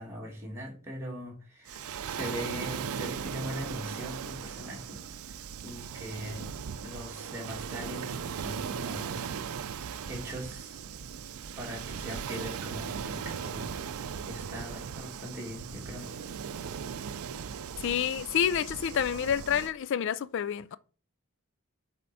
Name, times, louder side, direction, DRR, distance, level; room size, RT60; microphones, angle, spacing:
voice 1, 0.0-5.0 5.3-6.5 6.8-9.2 9.5-10.8 11.6-13.7 14.3-16.2, equal, 10° right, 2.0 m, -41 dB
Waves surf, 1.7-19.7, right 7 dB, 85° right, 0.5 m, -38 dB
voice 2, 17.8-20.8, left 8 dB, 55° left, 0.3 m, -28 dB
7.7 x 4.3 x 4.1 m
head